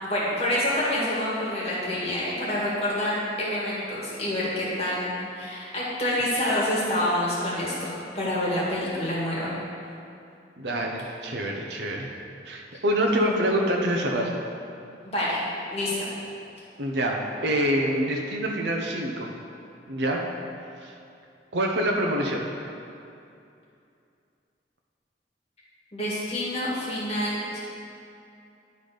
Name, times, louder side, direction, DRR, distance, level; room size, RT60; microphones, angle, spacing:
voice 1, 0.0-9.5 13.0-13.4 15.0-15.4 15.7-16.1 25.9-27.6, left 1 dB, 35° left, -7 dB, 1.9 m, -27 dB
voice 2, 10.6-12.2 12.5-14.4 16.8-19.3 19.9-20.2 20.8-20.9 21.5-22.5, right 1 dB, 75° right, 0 dB, 0.7 m, -26 dB
10.5 x 4.0 x 5.0 m, 2.6 s
head